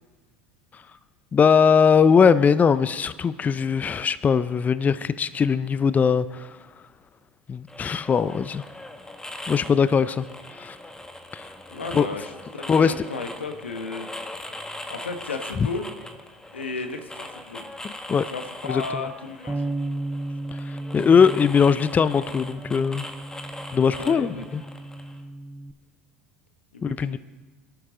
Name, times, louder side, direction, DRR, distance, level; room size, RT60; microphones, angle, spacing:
voice 1, 1.3-6.6 7.5-8.6 9.5-10.3 10.5-10.8 11.3-11.5 11.9-12.1 12.7-12.9 17.8-18.3 18.7-19.1 20.6-23.0 23.7-24.6 26.8-27.2, left 6 dB, 25° left, 15 dB, 0.5 m, -20 dB
sound 1, 7.7-25.2, left 1 dB, 10° left, 1.7 m, -40 dB
voice 2, 11.7-14.1 14.9-15.9 16.5-17.7 18.2-19.7 24.0-24.4 26.7-27.2, left 4 dB, 90° left, 7 dB, 1.2 m, -34 dB
Bass guitar, 19.5-25.7, right 2 dB, 15° right, 0.7 m, -34 dB
23.0 x 11.5 x 3.8 m, 1.3 s
hypercardioid pair, 75°, 6 cm